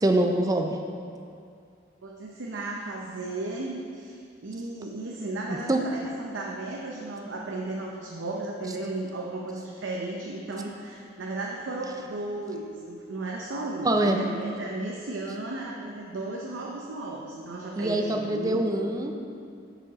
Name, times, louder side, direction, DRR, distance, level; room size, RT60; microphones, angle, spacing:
voice 1, 0.0-0.8 5.7-5.8 13.8-14.2 17.8-19.1, right 1 dB, 20° right, 4 dB, 0.5 m, -24 dB
voice 2, 2.0-18.6, right 2 dB, 90° right, -2 dB, 0.6 m, -35 dB
7.0 x 5.0 x 4.9 m, 2.4 s
head